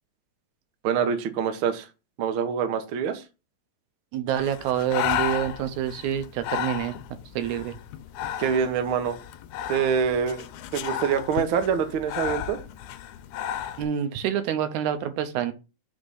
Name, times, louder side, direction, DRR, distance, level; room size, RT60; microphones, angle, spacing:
voice 1, 0.8-1.9 2.2-3.2 8.4-9.2 9.7-10.5 10.7-12.6, right 7 dB, 65° right, 7 dB, 1.3 m, -25 dB
voice 2, 4.1-7.0 7.3-7.7 13.8-15.5, right 10 dB, 85° right, 10 dB, 2.2 m, -27 dB
Breathing, 4.4-13.8, left 10 dB, 85° left, 2.0 m, -33 dB
5.2 x 4.1 x 5.3 m, 0.30 s
omnidirectional pair, 3.3 m